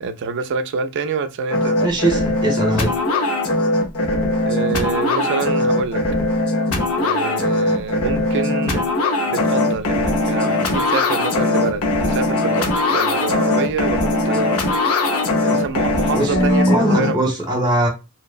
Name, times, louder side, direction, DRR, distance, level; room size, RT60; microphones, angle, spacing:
voice 1, 0.0-1.8 4.5-6.0 7.0-8.8 9.3-14.6 15.4-16.6 16.9-17.2, right 5 dB, 55° right, 0.4 m, -26 dB
sound 1, 1.5-17.1, left 2 dB, 80° left, 0.6 m, -20 dB
voice 2, 1.8-2.9 16.1-16.3 16.7-17.9, right 1 dB, 20° right, 0.9 m, -20 dB
2.8 x 2.0 x 2.4 m
head